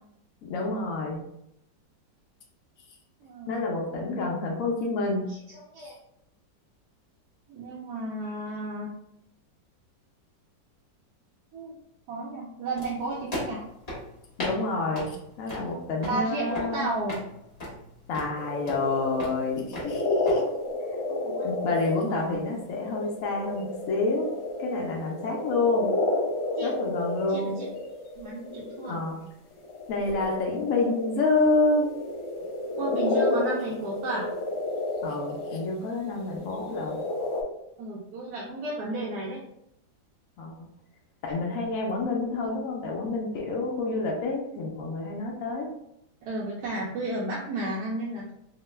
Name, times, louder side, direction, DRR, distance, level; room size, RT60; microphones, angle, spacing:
voice 1, 0.4-1.3 3.5-5.3 14.4-16.9 18.1-20.4 21.4-24.3 24.6-25.9 26.6-27.6 28.9-29.2 29.9-31.9 35.0-37.0 40.4-40.5 41.2-45.7, left 3 dB, 85° left, 0 dB, 0.7 m, -28 dB
voice 2, 3.2-3.6 5.3-6.0 7.5-8.9 11.5-11.7 12.1-13.6 16.0-17.2 20.3-20.5 21.1-21.5 26.6-26.8 27.3-27.7 28.2-29.0 32.8-34.3 37.8-39.4 46.2-48.3, right 2 dB, 70° right, -4 dB, 0.9 m, -33 dB
sound 1, 12.8-20.4, left 1 dB, 30° left, 0.7 m, -39 dB
sound 2, 18.4-29.1 29.5-35.7 36.2-37.4, left 2 dB, 65° left, 1.3 m, -31 dB
3.0 x 2.1 x 3.1 m, 0.79 s
omnidirectional pair, 2.0 m